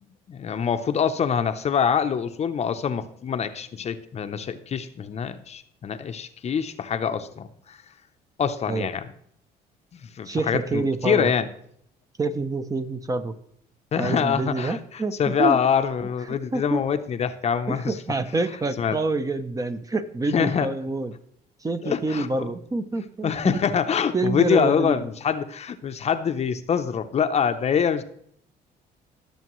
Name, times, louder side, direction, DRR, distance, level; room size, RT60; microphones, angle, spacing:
voice 1, 0.3-7.8 8.4-9.1 9.9-11.5 13.9-14.8 15.2-17.9 18.8-19.0 20.3-20.7 21.8-22.5 23.2-28.0, left 7 dB, 40° left, 10 dB, 0.6 m, -25 dB
voice 2, 10.2-11.3 12.2-13.3 14.0-15.6 16.3-16.8 17.7-21.1 21.6-23.6 24.1-25.1, right 3 dB, 20° right, 10 dB, 0.6 m, -27 dB
17.0 x 6.8 x 3.1 m, 0.67 s
cardioid pair, 110°, 17 cm